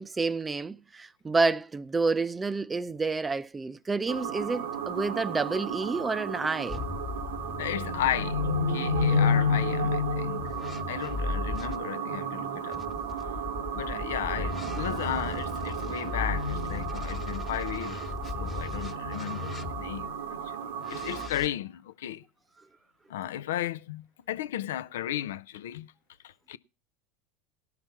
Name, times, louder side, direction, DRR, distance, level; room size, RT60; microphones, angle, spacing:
voice 1, 0.0-6.8 12.1-12.6, right 3 dB, 20° right, 0.6 m, -29 dB
sound 1, 4.1-21.3, equal, 75° right, 1.2 m, -32 dB
sound 2, 6.7-11.8 12.7-20.1 20.8-21.5, left 4 dB, 30° left, 1.3 m, -37 dB
voice 2, 7.6-10.5 10.9-12.9 13.7-18.0 18.4-20.6 20.9-22.2 23.1-25.9 26.2-26.6, left 12 dB, 75° left, 0.5 m, -34 dB
18.0 x 5.9 x 5.5 m
hypercardioid pair, 90°, 0 cm